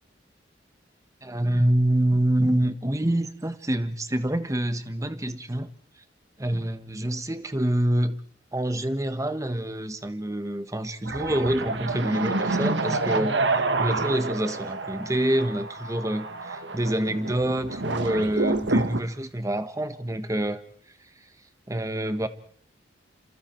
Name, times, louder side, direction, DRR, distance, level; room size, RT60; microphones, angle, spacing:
voice 1, 1.2-5.7 6.4-8.2 8.5-20.6 21.7-22.3, right 1 dB, 20° right, 1.3 m, -26 dB
sound 1, 11.1-19.0, right 3 dB, 75° right, 1.5 m, -28 dB
28.0 x 27.0 x 4.5 m
head